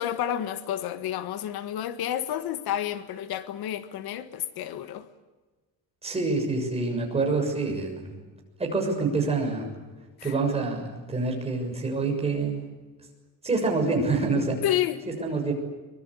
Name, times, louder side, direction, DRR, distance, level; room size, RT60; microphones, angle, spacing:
voice 1, 0.0-5.0 10.2-10.3 14.6-15.0, left 11 dB, 75° left, 1.7 m, -30 dB
voice 2, 6.0-8.1 8.6-9.7 10.2-12.6 13.4-14.6 15.2-15.5, right 3 dB, 15° right, 6.7 m, -26 dB
24.5 x 23.5 x 8.3 m
cardioid pair, 175°, 38 cm